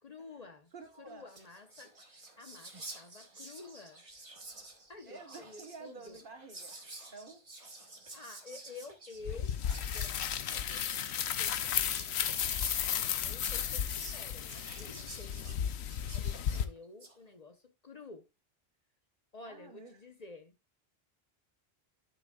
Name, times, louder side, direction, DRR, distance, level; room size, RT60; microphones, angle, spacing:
voice 1, 0.0-0.7 1.0-2.0 2.4-4.0 4.9-6.2 8.1-9.6 9.9-12.5 12.9-15.6 16.1-18.3 19.3-20.8, left 3 dB, 40° left, 1.0 m, -51 dB
voice 2, 0.7-1.3 5.1-6.7 7.1-7.4 19.4-20.0, right 3 dB, 55° right, 1.5 m, -49 dB
Whispering, 0.9-1.0 1.2-17.2, right 2 dB, 30° right, 1.3 m, -51 dB
sound 1, 9.2-16.6, left 9 dB, 85° left, 0.9 m, -34 dB
12.0 x 6.3 x 2.4 m
omnidirectional pair, 1.1 m